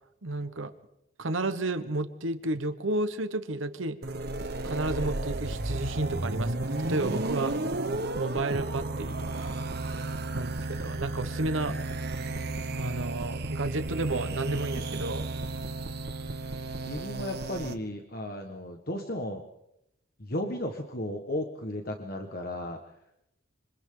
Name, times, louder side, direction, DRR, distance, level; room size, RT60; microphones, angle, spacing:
voice 1, 0.2-0.7 1.2-4.0 4.6-7.6 8.2-9.6 10.3-11.8 12.7-15.3, right 2 dB, 70° right, 10 dB, 1.2 m, -31 dB
sound 1, 4.0-17.7, right 2 dB, 50° right, 1.3 m, -33 dB
voice 2, 16.8-19.4 20.2-23.2, left 1 dB, 45° left, 4 dB, 1.5 m, -35 dB
26.5 x 25.5 x 3.9 m, 0.84 s
head